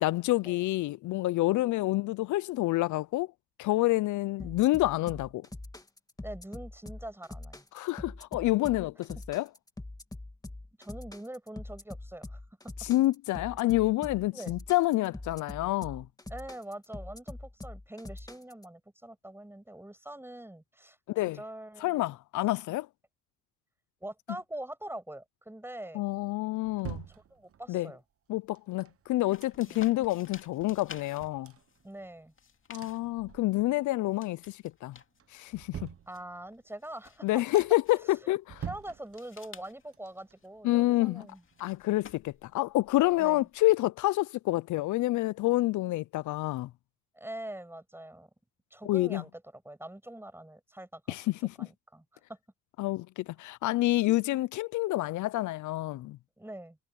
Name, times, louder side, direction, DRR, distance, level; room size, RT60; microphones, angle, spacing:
voice 1, 0.0-3.3 3.6-5.5 7.7-9.5 12.8-16.1 21.1-21.4 21.8-22.9 25.9-27.1 27.7-27.9 28.3-31.5 32.7-35.0 35.3-35.9 37.2-38.6 40.6-41.3 41.6-46.7 48.8-49.2 51.1-51.7 52.8-56.2, left 17 dB, 75° left, 0.5 m, -28 dB
sound 1, 4.4-18.6, left 2 dB, 10° left, 2.2 m, -44 dB
voice 2, 6.2-7.6 10.8-12.4 14.3-14.5 16.3-21.0 21.2-22.0 24.0-26.0 27.1-28.0 29.7-29.9 31.8-32.3 36.1-37.4 38.6-41.4 43.2-43.5 47.1-48.3 48.7-51.2 51.6-52.4 56.4-56.8, right 1 dB, 10° right, 6.9 m, -44 dB
sound 2, 26.1-27.8 28.5-30.0 30.3-30.4 30.7-32.3 32.7-33.9 34.2-34.7 35.2-36.6 37.1-37.2 37.5-38.0 38.4-39.6 39.9-41.7 42.1-42.2, right 9 dB, 50° right, 1.2 m, -47 dB
sound 3, 29.3-43.7, left 6 dB, 45° left, 2.4 m, -55 dB
cardioid pair, 90°, 30 cm